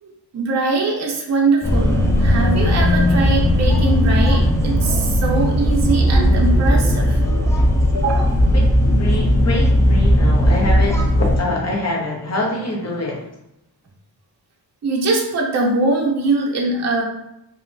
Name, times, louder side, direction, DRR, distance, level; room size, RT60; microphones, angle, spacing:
voice 1, 0.0-7.2 7.9-8.4 14.8-17.0, right 3 dB, 40° right, -1 dB, 0.6 m, -22 dB
sound 1, 1.6-11.4, equal, 5° left, 0.4 m, -16 dB
voice 2, 8.5-13.2, left 2 dB, 35° left, -2 dB, 0.9 m, -25 dB
2.7 x 2.4 x 2.5 m, 0.82 s
cardioid pair, 80°, 43 cm